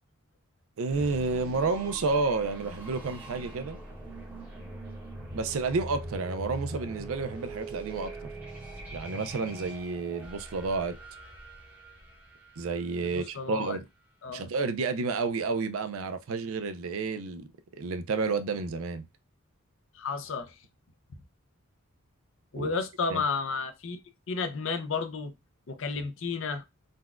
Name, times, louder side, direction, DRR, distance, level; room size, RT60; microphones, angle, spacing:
voice 1, 0.8-3.8 5.3-8.3 8.9-11.0 12.6-13.8 14.3-17.5 17.8-19.1 22.5-22.7 23.1-23.2, right 4 dB, 70° right, 0.4 m, -30 dB
sound 1, 0.9-13.6, right 1 dB, 5° right, 0.8 m, -42 dB
voice 2, 13.0-13.8 14.2-14.5 19.9-20.6 21.1-21.2 22.5-24.0 24.3-25.3 25.7-26.6, left 4 dB, 60° left, 0.5 m, -32 dB
3.9 x 2.2 x 2.3 m
head